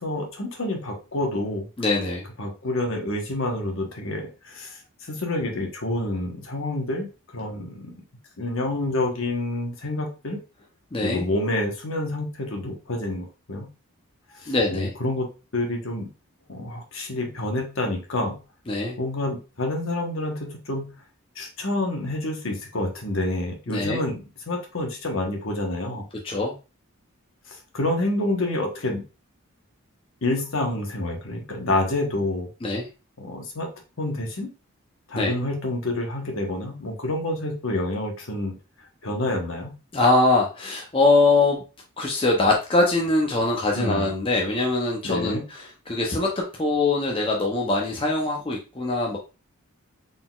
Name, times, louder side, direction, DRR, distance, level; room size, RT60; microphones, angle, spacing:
voice 1, 0.0-1.7 2.4-8.0 8.4-10.4 11.0-13.7 14.3-15.3 15.5-16.1 16.5-18.4 19.0-20.9 21.3-26.0 27.5-29.0 30.2-32.5 33.2-33.7 34.0-34.5 35.1-39.7 43.7-44.1 45.0-45.4, left 2 dB, 65° left, 2 dB, 1.1 m, -28 dB
voice 2, 1.8-2.2 10.9-11.3 14.5-14.9 18.7-19.0 23.7-24.0 26.2-26.5 32.6-32.9 35.1-35.3 39.9-41.6 42.0-45.4 45.9-49.2, left 2 dB, 25° left, -1 dB, 0.5 m, -22 dB
4.0 x 3.8 x 2.3 m, 0.31 s
head